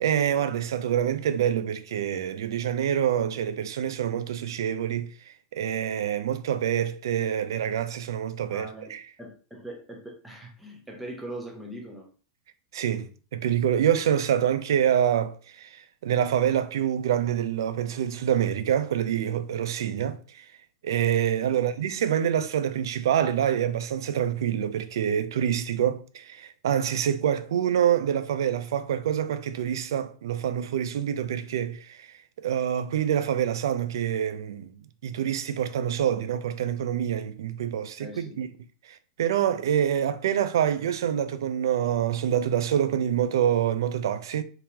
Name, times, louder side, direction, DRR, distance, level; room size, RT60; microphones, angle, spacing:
voice 1, 0.0-9.0 12.7-13.1 13.3-20.5 20.8-34.7 35.0-38.5 38.9-44.4, right 9 dB, 80° right, 0.4 m, -26 dB
voice 2, 8.5-12.1 38.0-38.4, right 1 dB, 5° right, 0.8 m, -41 dB
3.6 x 2.9 x 2.9 m
supercardioid pair, 150°, 2 cm